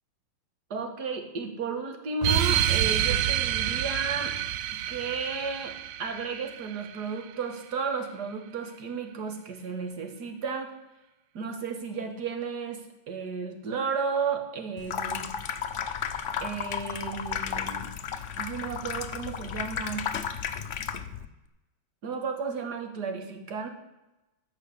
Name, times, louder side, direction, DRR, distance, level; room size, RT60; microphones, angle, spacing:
voice 1, 0.7-4.3 4.9-5.7 6.0-10.7 11.3-15.3 16.4-17.9 18.4-20.0 22.0-23.7, right 5 dB, 55° right, 6 dB, 2.0 m, -33 dB
sound 1, 2.2-7.2, right 11 dB, 80° right, 1.4 m, -28 dB
Water tap faucet / Sink (filling or washing), 14.8-21.3, left 7 dB, 60° left, 0.7 m, -33 dB
14.0 x 5.1 x 8.3 m, 0.99 s
omnidirectional pair, 2.2 m